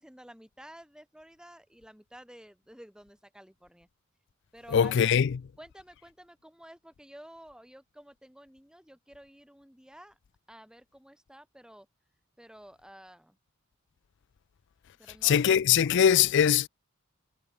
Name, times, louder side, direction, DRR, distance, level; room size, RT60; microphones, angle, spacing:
voice 1, 0.0-3.9 4.5-5.1 5.6-10.2 10.5-11.9 12.4-13.4 15.0-15.4 15.8-16.0, equal, 5° right, 3.7 m, -51 dB
voice 2, 4.7-5.3 15.2-16.7, left 8 dB, 60° left, 0.4 m, -21 dB
head